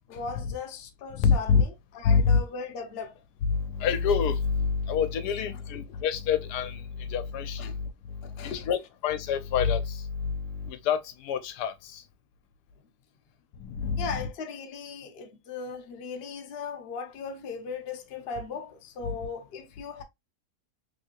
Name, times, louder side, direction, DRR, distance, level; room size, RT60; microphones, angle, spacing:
voice 1, 0.1-3.2 7.6-7.7 8.2-8.7 14.0-20.0, left 5 dB, 55° left, 0.7 m, -38 dB
voice 2, 1.2-1.6 2.0-2.4 3.5-7.9 8.4-12.0 13.6-14.3 19.0-19.2, left 6 dB, 85° left, 1.2 m, -27 dB
3.4 x 2.7 x 2.7 m
omnidirectional pair, 1.7 m